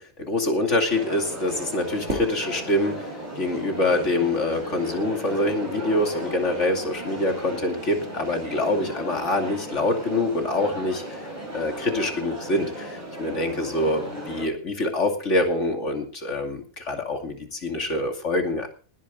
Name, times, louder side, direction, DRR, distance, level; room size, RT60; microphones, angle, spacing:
voice 1, 0.0-11.2 11.5-18.7, left 2 dB, 55° left, 4 dB, 2.9 m, -25 dB
sound 1, 0.9-14.5, right 1 dB, 30° right, 4.9 m, -35 dB
Fireworks, 2.1-4.4, equal, 55° right, 6.1 m, -36 dB
20.0 x 10.0 x 3.8 m, 0.37 s
omnidirectional pair, 1.5 m